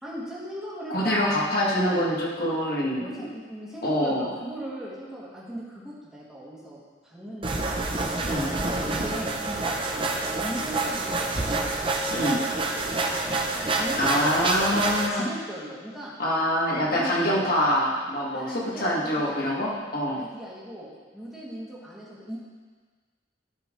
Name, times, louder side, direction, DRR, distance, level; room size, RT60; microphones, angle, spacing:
voice 1, 0.0-1.5 3.0-7.9 8.9-10.1 10.4-11.7 12.7-16.1 16.7-17.5 18.3-19.8 20.2-22.4, right 1 dB, 5° right, -8 dB, 2.1 m, -39 dB
voice 2, 0.9-3.1 3.8-4.3 8.2-8.5 12.1-12.4 14.0-15.2 16.2-20.2, equal, 50° left, -5 dB, 1.9 m, -25 dB
sound 1, 7.4-15.1, right 2 dB, 30° right, 0.8 m, -27 dB
13.0 x 5.9 x 3.9 m, 1.4 s
head